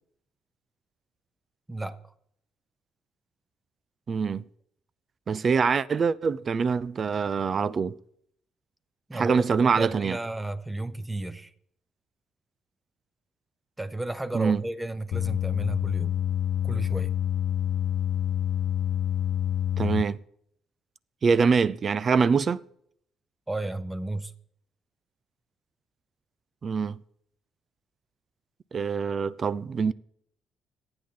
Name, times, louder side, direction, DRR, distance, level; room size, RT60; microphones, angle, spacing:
voice 1, 1.7-2.0 9.1-11.5 13.8-16.2 16.6-17.1 23.5-24.3, right 2 dB, 15° right, 1.0 m, -33 dB
voice 2, 4.1-4.4 5.3-8.0 9.1-10.2 14.3-14.6 19.8-20.2 21.2-22.6 26.6-27.0 28.7-29.9, right 5 dB, 45° right, 0.5 m, -24 dB
sound 1, 15.1-20.0, left 10 dB, 85° left, 0.4 m, -27 dB
26.0 x 8.7 x 3.8 m
cardioid pair, 90°, 0 cm